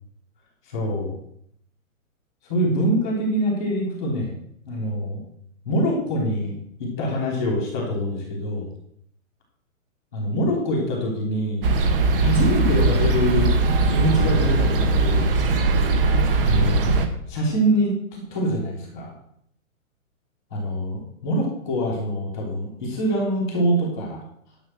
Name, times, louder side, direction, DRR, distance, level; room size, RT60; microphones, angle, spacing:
voice 1, 0.6-1.1 2.5-4.3 4.6-5.2 5.6-8.7 10.1-11.7 12.2-13.5 13.9-15.3 16.4-16.9 17.3-19.1 20.5-24.2, equal, 5° left, -16 dB, 0.4 m, -24 dB
sound 1, 11.6-17.1, right 3 dB, 40° right, 1.4 m, -20 dB
11.0 x 6.3 x 7.5 m, 0.70 s
hypercardioid pair, 160°, 41 cm